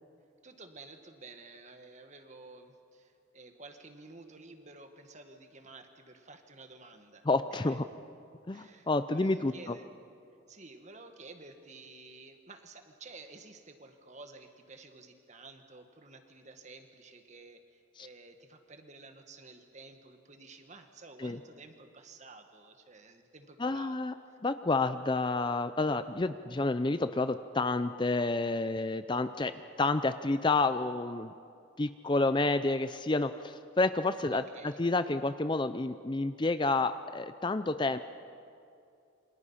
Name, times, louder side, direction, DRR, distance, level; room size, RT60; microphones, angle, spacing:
voice 1, 0.4-7.8 8.5-9.9 10.5-24.0 24.3-24.4 34.3-34.8, right 3 dB, 35° right, 6 dB, 1.8 m, -52 dB
voice 2, 7.3-7.9 8.5-9.8 18.0-18.1 21.2-21.4 23.6-24.1 24.4-31.3 31.8-38.0, left 3 dB, 25° left, 11 dB, 0.5 m, -29 dB
28.0 x 25.5 x 5.7 m, 2.5 s
head